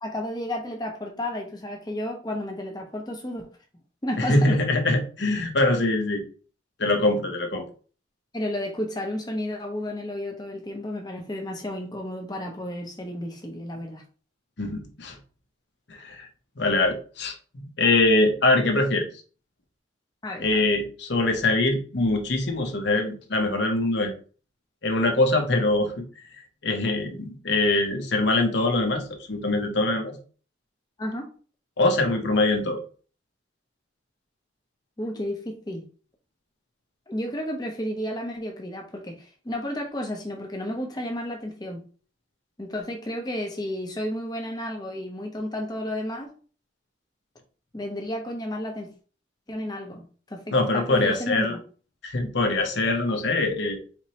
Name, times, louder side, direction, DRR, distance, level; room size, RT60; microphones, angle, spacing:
voice 1, 0.0-3.5 4.0-4.6 8.3-14.0 20.2-20.4 31.0-31.3 35.0-35.9 37.1-41.8 42.6-46.3 47.7-48.9 49.5-51.6, left 1 dB, 20° left, 0.7 m, -32 dB
voice 2, 4.2-6.2 6.8-7.6 14.6-15.2 15.9-16.3 16.6-19.1 20.4-24.1 24.8-25.9 26.6-30.2 31.8-32.8 50.5-51.6 52.0-53.8, left 2 dB, 60° left, 0.8 m, -23 dB
4.3 x 3.0 x 2.9 m
head